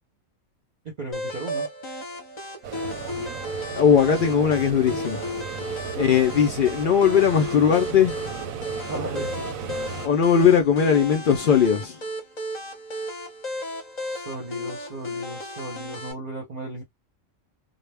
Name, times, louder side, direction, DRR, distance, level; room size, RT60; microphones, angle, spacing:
voice 1, 0.8-1.7 5.9-6.3 8.9-9.5 14.0-16.8, right 2 dB, 45° right, 0.7 m, -35 dB
sound 1, 1.1-16.1, left 1 dB, 40° left, 0.7 m, -34 dB
sound 2, 2.6-10.1, right 7 dB, 90° right, 1.0 m, -35 dB
voice 2, 3.8-5.3 5.9-8.2 10.0-12.0, left 7 dB, 75° left, 0.4 m, -19 dB
2.2 x 2.1 x 3.3 m
omnidirectional pair, 1.4 m